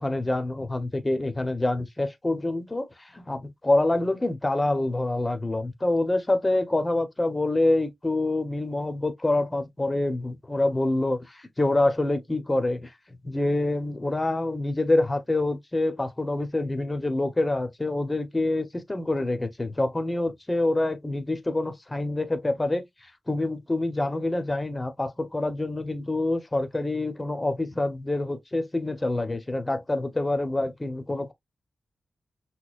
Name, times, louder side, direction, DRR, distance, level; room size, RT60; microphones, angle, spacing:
voice 1, 0.0-12.9 13.2-22.8 23.3-31.3, left 2 dB, 25° left, 0.8 m, -26 dB
6.2 x 2.2 x 2.4 m
cardioid pair, 65°, 0 cm